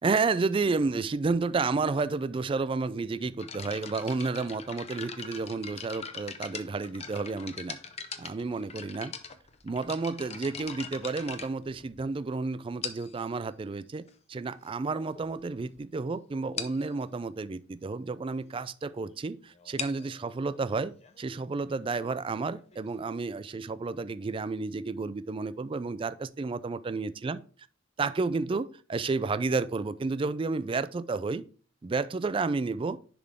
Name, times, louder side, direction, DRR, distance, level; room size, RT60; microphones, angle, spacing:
voice 1, 0.0-7.8 8.2-9.1 9.6-14.0 14.3-27.4 28.0-31.4 31.8-33.0, right 4 dB, 25° right, 0.3 m, -31 dB
sound 1, 3.4-12.2 12.8-13.3 14.1-14.2 14.8-14.9 15.2-15.4 15.7-15.8 16.1-16.2 16.6-16.9 19.5-23.0, left 6 dB, 30° left, 0.6 m, -42 dB
10.5 x 3.6 x 3.6 m
head